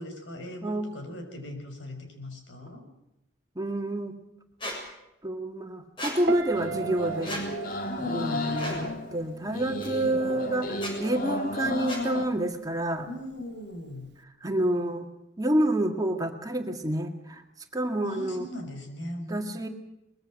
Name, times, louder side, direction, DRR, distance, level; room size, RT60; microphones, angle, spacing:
voice 1, 0.0-2.8 7.9-8.5 9.9-10.2 13.1-14.1 18.0-19.6, left 1 dB, 80° left, 4 dB, 6.1 m, -39 dB
voice 2, 3.6-4.2 5.2-7.4 8.1-13.1 14.4-15.1 15.4-17.4 17.7-18.5 19.3-19.7, right 1 dB, 20° right, 5 dB, 1.9 m, -28 dB
Squeak, 4.6-4.8 6.0-6.2 7.2-7.4 8.5-8.8 9.8-9.9 10.7-10.9 11.9-12.0, equal, 25° left, 6.9 m, -35 dB
Piano, 6.3-9.4 9.6-10.1, right 6 dB, 65° right, 1.3 m, -38 dB
sound 1, 6.5-12.3, left 1 dB, 50° left, 2.3 m, -33 dB
23.5 x 21.5 x 6.4 m, 0.87 s
head